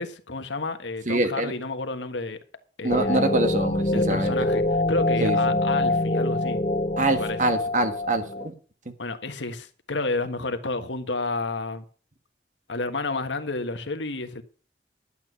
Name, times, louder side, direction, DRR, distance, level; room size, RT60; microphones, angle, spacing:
voice 1, 0.0-2.4 2.8-3.2 3.9-6.6 7.1-7.5 9.0-11.8 12.7-14.4, left 3 dB, 80° left, 1.5 m, -30 dB
voice 2, 1.1-1.5 2.8-4.4 5.2-5.6 7.0-8.5, right 2 dB, 40° right, 1.5 m, -25 dB
sound 1, 2.9-8.5, left 2 dB, 35° left, 1.1 m, -25 dB
11.5 x 8.4 x 6.1 m
head